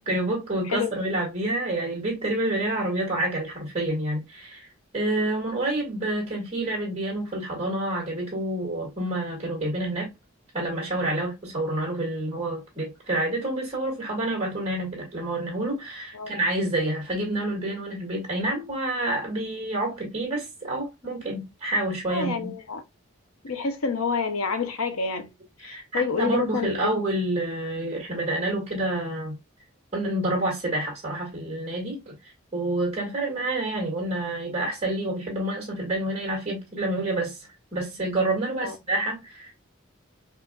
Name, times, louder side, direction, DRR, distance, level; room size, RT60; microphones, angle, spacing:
voice 1, 0.0-10.1 10.5-22.5 25.6-29.4 29.9-32.2 32.5-39.5, right 1 dB, 30° right, 2.1 m, -28 dB
voice 2, 22.1-22.8 23.4-25.3 25.6-26.9 38.6-38.8, left 5 dB, 90° left, 0.8 m, -28 dB
4.8 x 2.6 x 2.3 m
head